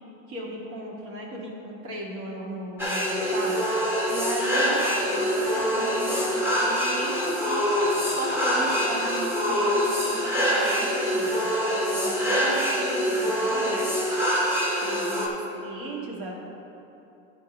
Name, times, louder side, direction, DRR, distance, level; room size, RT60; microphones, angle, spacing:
voice 1, 0.3-3.6 4.1-7.7 8.1-13.9 14.8-15.3 15.5-16.3, right 1 dB, 50° right, -2 dB, 2.0 m, -36 dB
sound 1, 2.8-15.3, equal, 5° right, 1.0 m, -25 dB
sound 2, 4.7-9.5, left 3 dB, 25° left, 0.7 m, -37 dB
11.0 x 3.8 x 5.3 m, 2.9 s
supercardioid pair, 125°, 41 cm